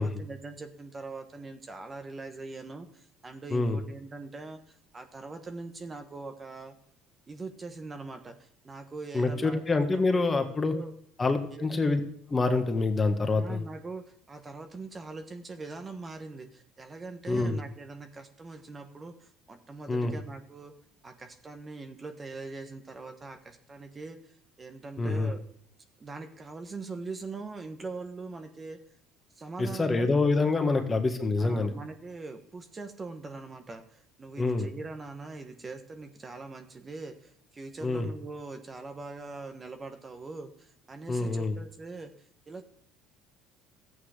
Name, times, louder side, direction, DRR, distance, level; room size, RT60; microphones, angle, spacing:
voice 1, 0.0-6.7 7.3-9.6 9.9-10.9 11.5-11.8 13.4-20.7 21.0-25.4 26.0-28.8 29.4-31.0 31.4-42.1 42.5-42.7, right 3 dB, 25° right, 7 dB, 1.3 m, -42 dB
voice 2, 9.1-10.7 11.2-12.0 12.3-13.6 17.3-17.6 19.9-20.1 25.0-25.3 29.6-31.7 34.4-34.7 37.8-38.1 41.1-41.5, left 3 dB, 25° left, 6 dB, 1.5 m, -26 dB
13.0 x 8.8 x 5.0 m, 0.67 s
supercardioid pair, 90°, 0 cm